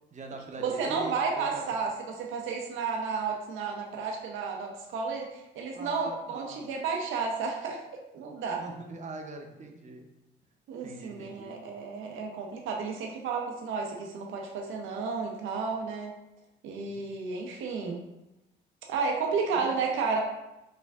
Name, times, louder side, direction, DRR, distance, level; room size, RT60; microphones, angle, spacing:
voice 1, 0.1-1.6 5.7-6.6 8.6-10.1 10.8-11.6 16.8-17.1 19.5-19.7, right 3 dB, 35° right, 3 dB, 0.6 m, -42 dB
voice 2, 0.6-7.8 8.1-8.6 10.7-16.1 16.6-18.0 18.9-20.2, right 5 dB, 80° right, 1 dB, 0.5 m, -32 dB
4.4 x 2.5 x 2.3 m, 0.95 s
cardioid pair, 90°, 20 cm